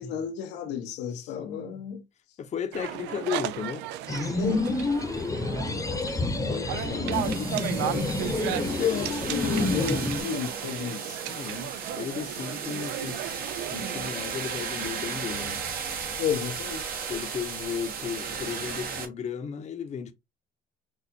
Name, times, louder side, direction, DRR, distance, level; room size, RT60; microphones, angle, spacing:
voice 1, 0.0-2.0 4.4-4.7 8.8-11.2 16.2-16.8, left 8 dB, 90° left, 1.0 m, -31 dB
voice 2, 1.4-1.8 2.4-3.9 5.3-9.4 11.3-13.3 13.7-15.7 17.0-20.1, left 7 dB, 45° left, 0.8 m, -36 dB
sound 1, 2.7-14.1, right 12 dB, 90° right, 0.4 m, -35 dB
sound 2, 4.1-10.2, left 3 dB, 20° left, 0.9 m, -29 dB
sound 3, 7.1-19.1, right 6 dB, 60° right, 1.3 m, -35 dB
6.3 x 2.5 x 2.7 m
cardioid pair, 110°, 17 cm